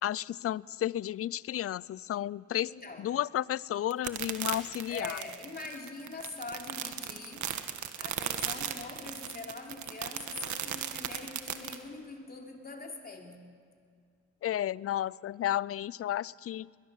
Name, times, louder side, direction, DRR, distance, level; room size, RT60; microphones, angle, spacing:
voice 1, 0.0-2.7 3.0-5.2 14.4-16.7, left 12 dB, 50° left, 23 dB, 0.5 m, -32 dB
voice 2, 2.6-3.1 4.9-7.5 8.0-13.4, left 3 dB, 30° left, 1 dB, 3.6 m, -43 dB
sound 1, 3.9-11.8, right 10 dB, 70° right, 1.6 m, -36 dB
21.5 x 21.0 x 7.4 m, 2.2 s
cardioid pair, 90°, 30 cm